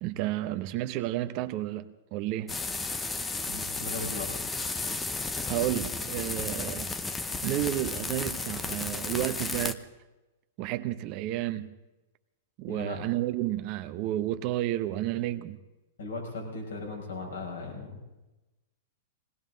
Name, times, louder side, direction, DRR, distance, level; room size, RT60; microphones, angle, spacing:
voice 1, 0.0-2.6 5.5-6.9 7.4-9.8 10.6-11.8 12.6-15.6, right 14 dB, 45° right, 0.8 m, -31 dB
sound 1, 2.5-9.7, left 3 dB, 10° left, 0.7 m, -33 dB
voice 2, 3.5-4.3 12.7-13.0 16.0-18.0, left 3 dB, 85° left, 5.5 m, -37 dB
20.0 x 18.5 x 3.9 m
hypercardioid pair, 140°, 0 cm